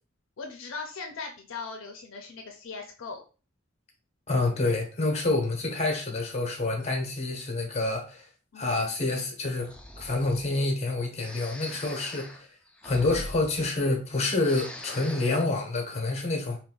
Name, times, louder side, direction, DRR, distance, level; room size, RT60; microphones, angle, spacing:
voice 1, 0.4-3.2 8.5-8.9, left 4 dB, 65° left, 0.5 m, -39 dB
voice 2, 4.3-8.3 8.5-12.5 12.8-16.6, left 2 dB, 30° left, 0.7 m, -28 dB
Breathing, 9.6-10.6 11.2-14.1 14.4-15.5, left 1 dB, 5° left, 0.3 m, -43 dB
2.5 x 2.3 x 3.7 m
head